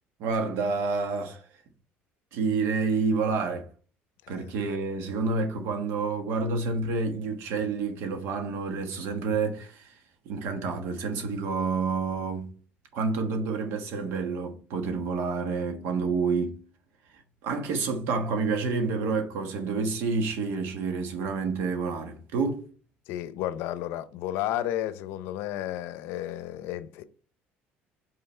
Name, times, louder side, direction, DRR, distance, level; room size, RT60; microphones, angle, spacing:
voice 1, 0.2-1.4 2.3-3.7 4.3-9.9 10.2-12.5 12.9-16.6 17.1-22.7, right 4 dB, 70° right, 1.4 m, -29 dB
voice 2, 23.1-27.0, left 12 dB, 80° left, 0.7 m, -32 dB
5.7 x 3.8 x 4.4 m
cardioid pair, 155°, 4 cm